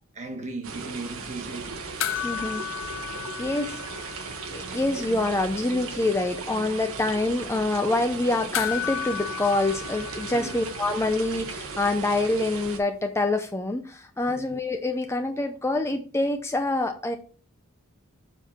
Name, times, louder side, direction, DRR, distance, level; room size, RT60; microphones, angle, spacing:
voice 1, 0.1-1.8 10.3-10.6 14.3-14.5, right 2 dB, 30° right, 1.3 m, -37 dB
sound 1, 0.6-12.8, right 4 dB, 65° right, 1.1 m, -37 dB
sound 2, 2.0-4.7 4.9-5.0 8.5-11.1 13.3-13.4, left 11 dB, 60° left, 0.7 m, -33 dB
voice 2, 2.2-2.6 3.4-4.2 4.5-17.2, left 2 dB, 10° left, 0.5 m, -26 dB
7.0 x 4.5 x 4.2 m
head